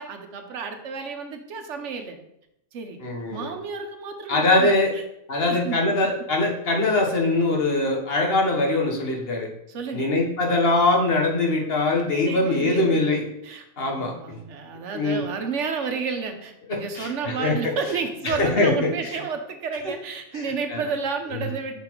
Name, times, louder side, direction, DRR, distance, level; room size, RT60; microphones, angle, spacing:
voice 1, 0.0-2.2 2.7-3.0 3.3-5.0 5.5-5.8 9.7-10.1 12.3-21.8, right 5 dB, 70° right, 6 dB, 1.0 m, -31 dB
voice 2, 3.0-3.5 4.3-4.9 5.3-9.5 9.9-13.3 13.8-14.4 14.9-15.2 16.7-17.6 18.2-18.9 19.8-19.9 20.3-20.4 20.7-20.8, left 2 dB, 55° left, 1 dB, 1.2 m, -22 dB
5.9 x 4.0 x 4.4 m, 0.80 s
omnidirectional pair, 1.3 m